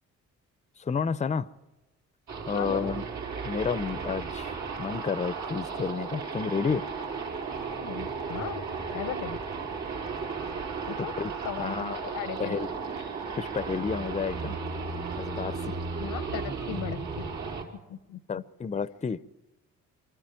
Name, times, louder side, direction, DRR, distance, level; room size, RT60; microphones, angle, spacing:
voice 1, 0.8-1.5 2.5-3.0 3.4-6.8 11.0-11.3 11.6-12.0 12.4-12.7 13.3-14.6 15.2-15.8 18.3-19.2, left 5 dB, 25° left, 0.6 m, -31 dB
sound 1, 2.3-17.6, right 5 dB, 70° right, 4.4 m, -35 dB
voice 2, 2.5-2.9 7.7-8.6 8.9-9.4 10.9-11.1 11.4-12.6 16.0-17.3 17.9-18.4, left 11 dB, 85° left, 1.0 m, -37 dB
24.0 x 13.5 x 9.1 m
cardioid pair, 90°, 30 cm